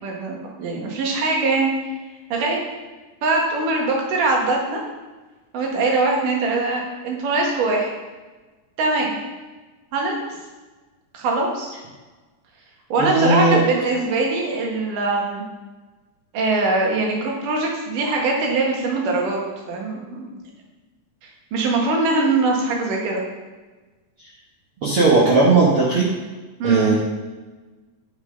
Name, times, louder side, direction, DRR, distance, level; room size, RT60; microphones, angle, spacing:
voice 1, 0.0-1.7 2.3-2.6 3.2-4.8 5.5-7.9 8.8-9.2 9.9-10.4 11.1-11.7 12.9-15.4 16.3-19.4 19.7-20.3 21.2-23.2 26.6-27.0, right 3 dB, 65° right, -1 dB, 3.0 m, -22 dB
voice 2, 13.0-13.6 24.8-26.1 26.6-26.9, right 3 dB, 50° right, -6 dB, 1.8 m, -17 dB
9.4 x 6.2 x 5.2 m, 1.2 s
omnidirectional pair, 4.1 m